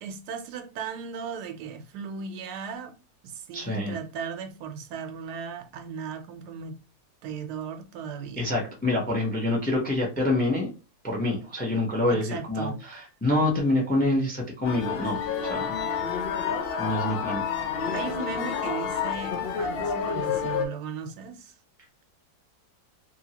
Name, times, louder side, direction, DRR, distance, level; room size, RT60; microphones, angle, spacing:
voice 1, 0.0-3.0 3.2-6.8 7.2-8.5 12.1-12.8 15.7-16.0 17.9-21.6, right 6 dB, 85° right, 1.2 m, -37 dB
voice 2, 3.5-4.0 8.4-10.7 11.0-15.7 16.8-17.4, left 2 dB, 10° left, 0.5 m, -26 dB
sound 1, 14.6-20.6, left 7 dB, 85° left, 0.5 m, -29 dB
2.8 x 2.7 x 2.8 m
omnidirectional pair, 1.7 m